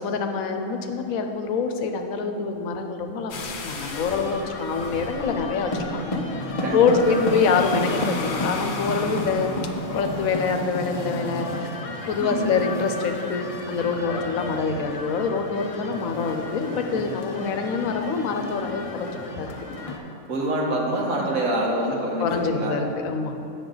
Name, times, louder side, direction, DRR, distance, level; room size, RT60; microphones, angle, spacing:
voice 1, 0.0-9.5 9.9-11.7 12.1-19.5 22.2-23.5, left 5 dB, 85° left, 6 dB, 1.1 m, -25 dB
sound 1, 3.3-10.3, left 3 dB, 60° left, 0.9 m, -36 dB
sound 2, 3.7-20.0, left 1 dB, 40° left, 0.5 m, -32 dB
voice 2, 6.6-7.5 12.2-12.7 20.3-22.8, right 1 dB, 85° right, -3 dB, 1.7 m, -26 dB
8.9 x 6.8 x 3.9 m, 2.7 s
omnidirectional pair, 1.4 m